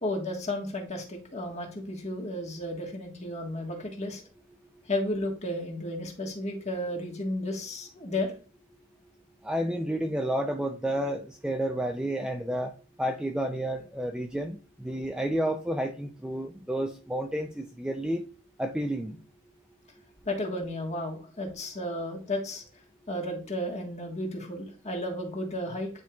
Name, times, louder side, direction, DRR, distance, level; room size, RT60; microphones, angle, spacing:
voice 1, 0.0-4.2 4.9-8.3 20.2-22.6 23.1-25.9, left 1 dB, 30° left, 2 dB, 1.4 m, -33 dB
voice 2, 9.4-12.7 13.0-18.2 18.6-19.2, right 1 dB, 5° right, 3 dB, 0.4 m, -30 dB
9.5 x 4.5 x 2.3 m, 0.36 s
head